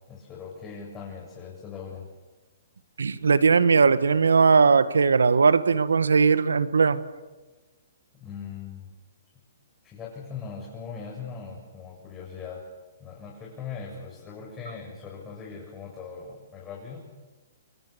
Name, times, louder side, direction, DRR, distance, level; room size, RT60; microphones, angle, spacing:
voice 1, 0.1-2.0 8.1-8.9 9.8-12.6 13.0-17.1, left 6 dB, 20° left, -2 dB, 7.9 m, -40 dB
voice 2, 3.0-7.0, right 5 dB, 85° right, 13 dB, 1.7 m, -19 dB
30.0 x 23.0 x 7.0 m, 1.2 s
hypercardioid pair, 135°, 0 cm